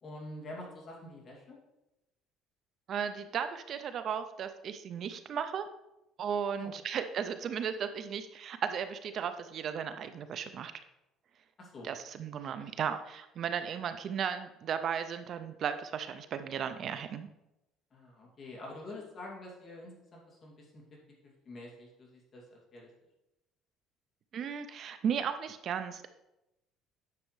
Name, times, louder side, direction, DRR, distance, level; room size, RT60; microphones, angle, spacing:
voice 1, 0.0-1.6 6.6-6.7 11.6-11.9 17.9-20.8 21.5-22.9, left 1 dB, 30° left, -2 dB, 2.3 m, -46 dB
voice 2, 2.9-5.7 6.2-10.7 11.8-17.3 24.3-26.1, right 7 dB, 45° right, 10 dB, 0.4 m, -35 dB
9.7 x 6.2 x 3.1 m, 0.93 s
cardioid pair, 145°, 0 cm